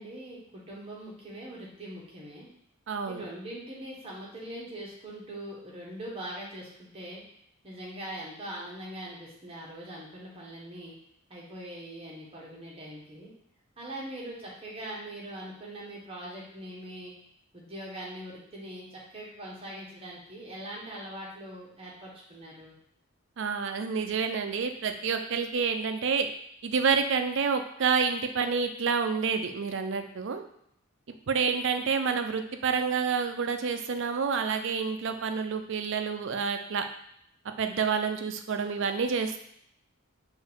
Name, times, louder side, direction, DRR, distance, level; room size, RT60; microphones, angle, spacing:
voice 1, 0.0-2.5 3.1-7.2 7.6-10.9 11.3-13.3 13.8-17.1 17.5-22.7, right 1 dB, 30° right, -5 dB, 1.3 m, -42 dB
voice 2, 2.9-3.2 23.4-26.3 26.6-30.4 31.3-36.8 37.6-39.4, right 5 dB, 60° right, 7 dB, 0.5 m, -28 dB
5.4 x 2.6 x 3.6 m, 0.71 s
head